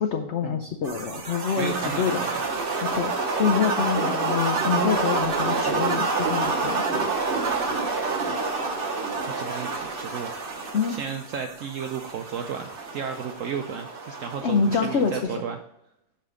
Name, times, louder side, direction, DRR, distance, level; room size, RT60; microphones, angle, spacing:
voice 1, 0.0-2.2 2.9-3.1 3.4-7.1 10.7-11.0 14.4-15.3, left 6 dB, 85° left, 5 dB, 0.6 m, -26 dB
sound 1, 0.8-15.2, right 4 dB, 40° right, 0.9 m, -28 dB
voice 2, 1.6-2.4 9.4-10.3 10.9-15.6, right 7 dB, 70° right, 5 dB, 0.7 m, -33 dB
5.6 x 5.2 x 4.9 m, 0.82 s
omnidirectional pair, 1.9 m